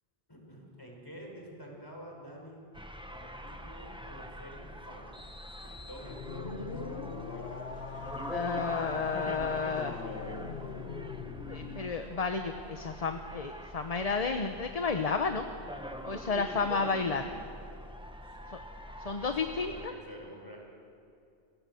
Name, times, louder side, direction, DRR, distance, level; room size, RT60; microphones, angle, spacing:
voice 1, 0.3-2.6 3.1-5.2 5.6-7.8 9.3-10.3 18.2-20.6, equal, 20° left, -1 dB, 5.7 m, -49 dB
sound 1, 2.7-19.9, equal, 5° right, 1.0 m, -44 dB
sound 2, 6.0-12.0, left 4 dB, 70° left, 1.8 m, -41 dB
voice 2, 8.3-9.9 11.5-15.5 16.0-17.2 19.0-19.9, left 4 dB, 40° left, 6 dB, 1.0 m, -31 dB
29.0 x 17.5 x 7.0 m, 2.5 s
omnidirectional pair, 1.1 m